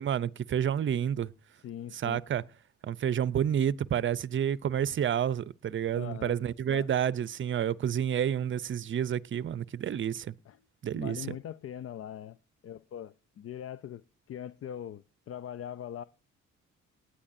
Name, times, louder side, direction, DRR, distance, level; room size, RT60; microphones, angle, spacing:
voice 1, 0.0-1.3 1.9-2.4 2.8-10.3 10.8-11.3, right 9 dB, 40° right, 0.6 m, -29 dB
voice 2, 1.6-2.2 5.9-6.4 6.7-6.9 10.5-10.6 10.9-12.4 12.6-16.0, left 10 dB, 50° left, 0.5 m, -41 dB
18.5 x 9.9 x 2.7 m
cardioid pair, 90°, 30 cm